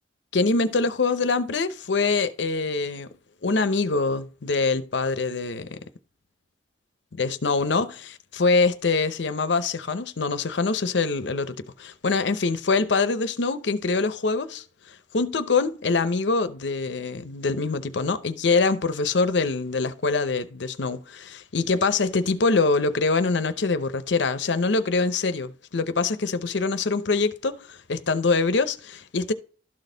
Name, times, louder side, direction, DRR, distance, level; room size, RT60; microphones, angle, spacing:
voice 1, 0.3-3.1 3.4-5.9 7.1-29.3, left 4 dB, 70° left, 0.7 m, -24 dB
12.5 x 4.2 x 3.9 m
head